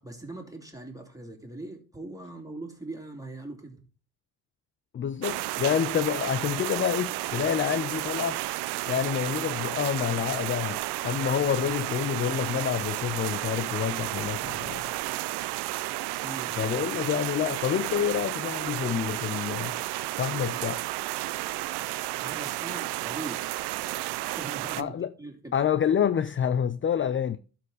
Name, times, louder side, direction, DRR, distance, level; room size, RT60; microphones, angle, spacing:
voice 1, 0.0-3.8 16.2-16.5 22.2-23.6 24.2-25.5, right 2 dB, 10° right, 2.9 m, -41 dB
voice 2, 4.9-8.4 8.9-14.9 16.6-19.7 20.2-20.8 24.8-25.1 25.5-27.4, left 8 dB, 30° left, 0.5 m, -28 dB
sound 1, 5.2-24.8, right 17 dB, 75° right, 0.6 m, -32 dB
12.0 x 4.4 x 4.0 m
supercardioid pair, 60°, 41 cm